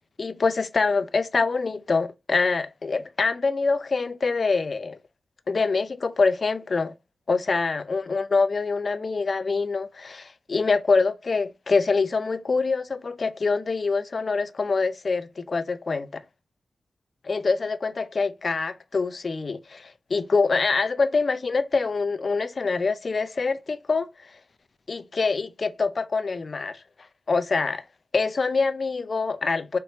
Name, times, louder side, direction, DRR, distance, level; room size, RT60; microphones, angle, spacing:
voice 1, 0.2-5.0 5.5-6.9 7.3-16.2 17.2-24.1 24.9-26.8 27.3-27.8 28.1-29.8, left 4 dB, 55° left, 0.4 m, -25 dB
4.1 x 3.1 x 2.9 m
cardioid pair, 60°, 0 cm